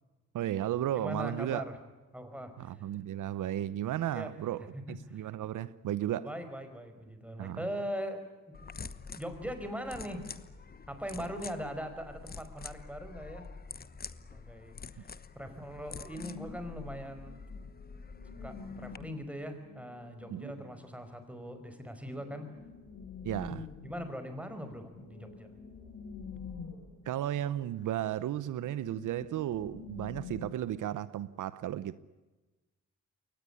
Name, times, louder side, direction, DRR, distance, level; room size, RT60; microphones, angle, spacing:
voice 1, 0.3-1.6 2.6-4.7 5.1-6.3 7.4-7.6 20.3-20.5 23.2-23.7 27.1-32.0, right 12 dB, 80° right, 0.9 m, -34 dB
voice 2, 0.9-1.8 2.1-2.8 4.1-4.3 4.7-4.8 5.1-5.3 6.2-8.7 9.1-10.3 10.9-13.4 14.3-17.3 18.4-22.5 23.8-25.5, equal, 5° right, 5.0 m, -41 dB
sound 1, 8.5-19.0, left 5 dB, 30° left, 1.1 m, -47 dB
sound 2, 16.1-21.0 22.1-27.6 27.9-28.0 28.4-31.3, left 5 dB, 65° left, 4.6 m, -48 dB
23.5 x 19.0 x 9.8 m
cardioid pair, 95°, 31 cm